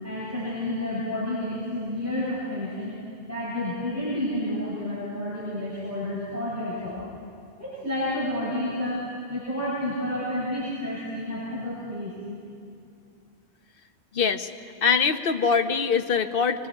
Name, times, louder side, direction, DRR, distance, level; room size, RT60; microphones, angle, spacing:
voice 1, 0.0-3.0 3.3-7.0 7.6-12.1, left 1 dB, 15° right, -11 dB, 7.3 m, -30 dB
voice 2, 14.1-14.5 14.8-16.7, left 6 dB, 60° left, 8 dB, 1.0 m, -23 dB
24.5 x 24.0 x 4.7 m, 2.4 s
omnidirectional pair, 1.1 m